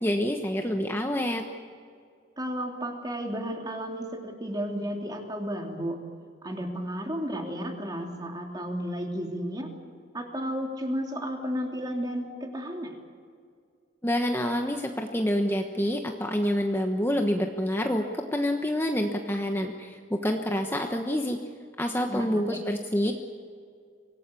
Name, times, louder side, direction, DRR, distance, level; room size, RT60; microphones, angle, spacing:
voice 1, 0.0-1.5 14.0-21.4 21.8-23.1, equal, 15° left, 3 dB, 1.2 m, -27 dB
voice 2, 2.4-6.0 6.4-9.7 10.1-13.0 22.1-22.6, equal, 20° right, 2 dB, 3.1 m, -33 dB
25.0 x 18.0 x 8.4 m, 2.2 s
head